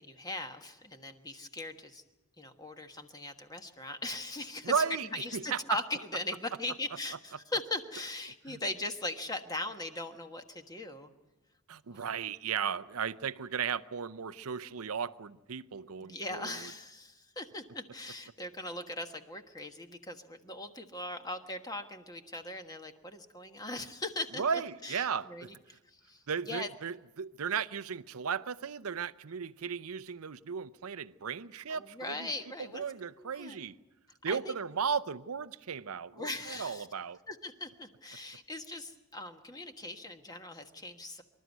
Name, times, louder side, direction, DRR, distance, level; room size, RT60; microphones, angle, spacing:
voice 1, 0.0-2.0 2.4-4.8 5.1-11.1 11.9-12.1 16.0-26.7 31.7-32.8 33.2-33.6 34.3-34.5 36.1-36.9 37.3-41.2, left 2 dB, 15° left, 1.4 m, -40 dB
voice 2, 4.6-5.8 8.5-8.6 11.7-16.7 24.4-25.5 26.3-32.3 32.7-33.8 34.2-37.2, right 6 dB, 75° right, 0.6 m, -35 dB
25.5 x 12.5 x 9.3 m
head